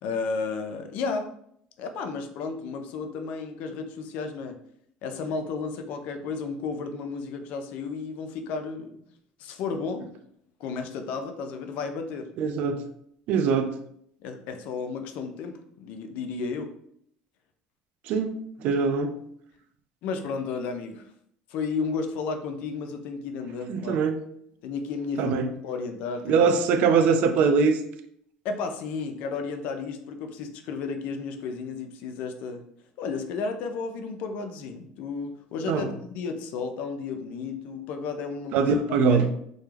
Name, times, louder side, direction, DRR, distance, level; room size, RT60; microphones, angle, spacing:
voice 1, 0.0-1.3 1.8-4.5 5.0-9.0 9.4-10.1 10.6-12.3 13.3-13.5 14.2-16.7 20.0-21.0 21.5-24.0 24.6-26.6 28.4-32.6 33.0-38.7 39.0-39.3, left 4 dB, 65° left, 6 dB, 0.4 m, -33 dB
voice 2, 12.4-12.8 13.3-13.7 18.1-18.3 18.6-19.1 23.7-24.2 25.2-25.5 26.3-27.8 35.6-35.9 38.5-39.3, right 5 dB, 60° right, 8 dB, 0.3 m, -22 dB
2.2 x 2.1 x 3.1 m, 0.69 s
supercardioid pair, 115°, 3 cm